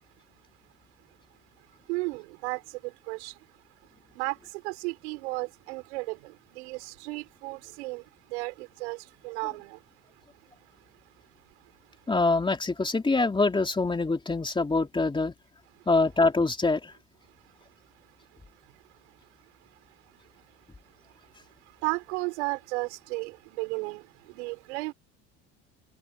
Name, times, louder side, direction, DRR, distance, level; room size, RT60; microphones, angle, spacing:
voice 1, 1.9-3.5 4.1-9.8 10.1-10.2 10.7-11.0 11.6-11.7 15.8-15.9 17.4-17.5 18.0-18.1 18.6-24.9, right 24 dB, 85° right, 5.6 m, -36 dB
voice 2, 12.1-15.3 15.9-16.9, left 3 dB, 15° left, 3.0 m, -24 dB
supercardioid pair, 95°, 32 cm